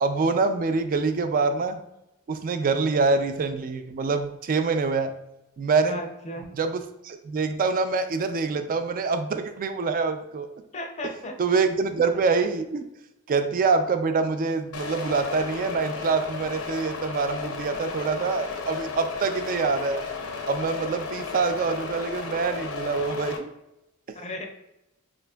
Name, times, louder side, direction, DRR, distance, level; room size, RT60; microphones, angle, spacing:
voice 1, 0.0-1.8 2.3-5.1 5.6-6.0 6.5-10.5 11.4-12.9 13.3-20.0 20.5-23.5 24.1-24.2, right 4 dB, 40° right, 8 dB, 0.3 m, -25 dB
voice 2, 5.9-6.5 10.7-11.4 24.1-24.5, left 1 dB, 30° left, 4 dB, 0.5 m, -35 dB
sound 1, 14.7-23.4, left 5 dB, 75° left, 0.6 m, -34 dB
4.9 x 2.5 x 2.2 m, 0.87 s
head